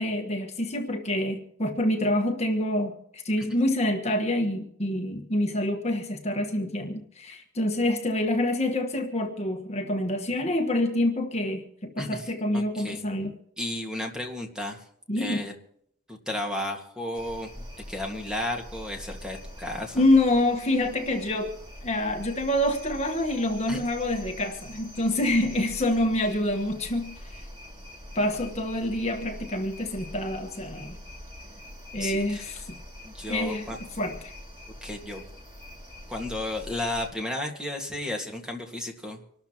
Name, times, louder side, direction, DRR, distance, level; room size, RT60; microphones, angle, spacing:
voice 1, 0.0-13.3 15.1-15.4 19.9-27.5 28.1-31.0 31.9-32.8 33.3-34.3, left 1 dB, 30° left, 4 dB, 1.4 m, -27 dB
voice 2, 13.6-14.8 15.1-15.5 16.1-17.5 17.9-20.0 23.7-23.8 32.0-32.4 33.0-33.8 34.8-35.2 36.1-39.2, left 1 dB, 5° right, 2 dB, 1.8 m, -33 dB
sound 1, 17.1-37.1, left 1 dB, 25° right, 2.6 m, -44 dB
26.0 x 13.0 x 3.0 m, 0.68 s
head